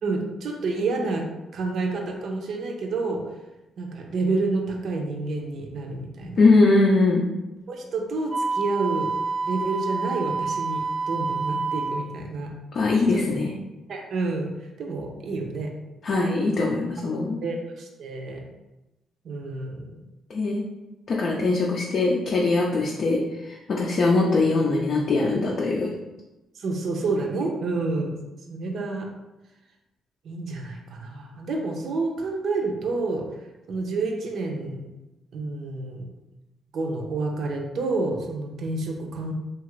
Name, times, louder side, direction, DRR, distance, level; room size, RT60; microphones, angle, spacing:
voice 1, 0.0-3.3 3.8-6.4 7.7-9.1 9.4-12.5 13.1-13.2 13.9-15.7 17.4-18.5 19.2-20.0 26.5-28.2 28.5-29.1 30.2-33.3 33.7-34.8 35.3-36.0 36.7-39.3, right 3 dB, 65° right, 1 dB, 0.5 m, -29 dB
voice 2, 6.4-7.2 12.7-13.5 16.0-17.4 20.3-20.7 21.1-25.9, left 3 dB, 55° left, -3 dB, 0.4 m, -21 dB
Wind instrument woodwind instrument, 8.3-12.0, right 4 dB, 25° right, 0.7 m, -28 dB
2.8 x 2.4 x 3.0 m, 1.0 s
cardioid pair, 90°, 0 cm